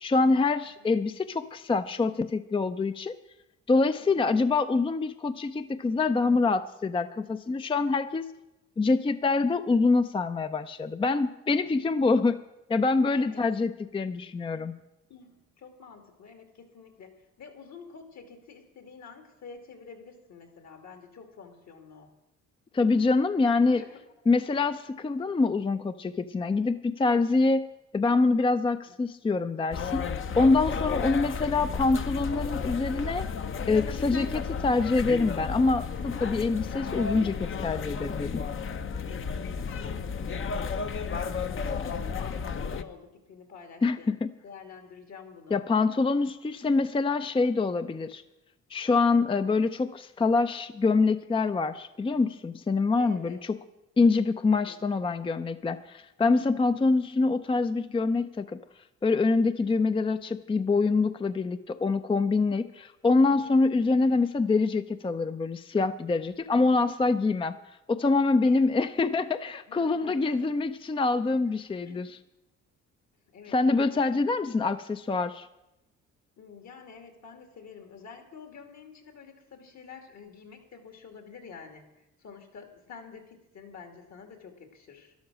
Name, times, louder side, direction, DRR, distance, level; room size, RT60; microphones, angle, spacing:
voice 1, 0.0-3.2 3.7-8.3 8.8-12.4 12.7-14.7 22.7-23.8 24.3-27.7 27.9-30.0 30.4-33.2 33.7-38.4 43.8-44.3 45.5-48.2 48.7-53.6 54.0-58.6 59.0-67.6 67.9-72.1 73.5-75.5, left 3 dB, 20° left, 11 dB, 0.5 m, -25 dB
voice 2, 4.0-4.3 13.1-13.4 14.5-14.7 15.1-22.1 23.7-24.0 24.5-24.6 39.0-40.5 41.4-44.1 44.4-45.6 53.0-53.4 54.5-54.8 68.4-68.7 69.7-70.6 71.4-72.1 73.3-74.1 76.4-85.1, left 5 dB, 65° left, 5 dB, 2.7 m, -48 dB
sound 1, 29.7-42.8, left 5 dB, 45° left, 0.8 m, -33 dB
12.5 x 11.5 x 6.3 m, 0.93 s
cardioid pair, 90°, 30 cm